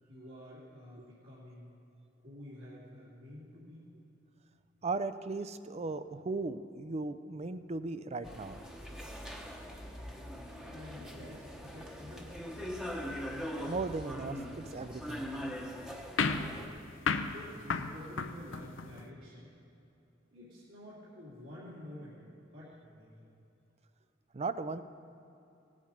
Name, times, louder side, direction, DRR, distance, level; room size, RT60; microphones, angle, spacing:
voice 1, 0.0-1.7 2.2-3.9 10.7-12.4 17.2-19.5 20.3-23.3, left 1 dB, 70° right, -10 dB, 2.9 m, -50 dB
voice 2, 4.8-8.6 13.7-15.3 24.3-24.8, right 3 dB, 35° right, 12 dB, 0.5 m, -37 dB
sound 1, 8.2-16.7, equal, 5° right, 1.0 m, -42 dB
sound 2, 16.2-19.1, left 5 dB, 80° left, 0.7 m, -34 dB
17.0 x 8.6 x 5.2 m, 2.8 s
head